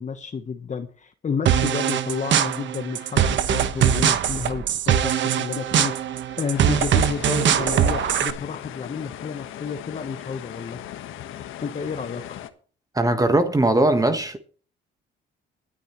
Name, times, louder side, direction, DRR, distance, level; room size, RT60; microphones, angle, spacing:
voice 1, 0.0-5.9 6.4-10.8 11.6-12.4, left 6 dB, 35° left, 1.2 m, -31 dB
sound 1, 1.5-8.3, right 9 dB, 70° right, 1.3 m, -22 dB
sound 2, 6.5-12.5, left 11 dB, 85° left, 1.4 m, -38 dB
voice 2, 12.9-14.4, right 1 dB, 15° right, 1.4 m, -19 dB
23.5 x 10.0 x 3.1 m
cardioid pair, 90°, 20 cm